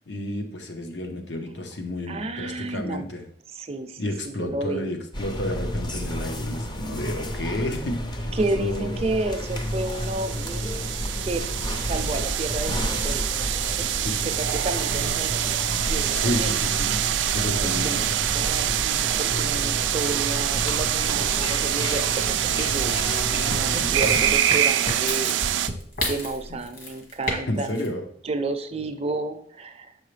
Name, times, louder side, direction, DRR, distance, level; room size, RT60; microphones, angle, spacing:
voice 1, 0.1-3.2 4.0-8.3 8.5-9.0 14.0-14.2 16.1-16.9 17.3-18.1 23.7-23.9 27.5-28.0, left 1 dB, 75° left, 4 dB, 1.0 m, -31 dB
voice 2, 2.1-3.1 3.5-4.9 8.3-10.7 11.2-11.4 11.8-13.2 13.8-13.9 14.2-15.4 15.8-16.6 17.2-23.0 23.3-25.4 26.0-27.9 28.2-30.1, right 2 dB, 35° right, 8 dB, 0.6 m, -31 dB
sound 1, 5.1-24.3, equal, 25° left, 0.6 m, -31 dB
sound 2, 9.4-25.7, right 12 dB, 85° right, 0.3 m, -25 dB
sound 3, 22.1-27.4 27.6-27.9, left 1 dB, 55° left, 1.7 m, -31 dB
6.8 x 4.7 x 3.3 m, 0.62 s
head